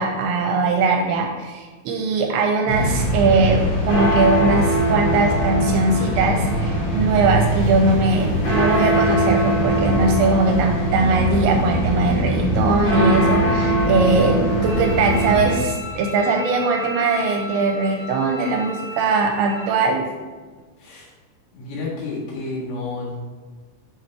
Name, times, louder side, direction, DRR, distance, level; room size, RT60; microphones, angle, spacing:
voice 1, 0.0-20.1, right 3 dB, 80° right, 2 dB, 2.7 m, -20 dB
sound 1, 2.7-15.6, right 1 dB, 40° left, 2.3 m, -21 dB
Bowed string instrument, 14.6-19.6, left 2 dB, 65° left, 2.9 m, -34 dB
voice 2, 21.5-23.2, left 3 dB, 85° left, -5 dB, 4.4 m, -30 dB
8.7 x 5.9 x 3.3 m, 1.4 s
omnidirectional pair, 5.6 m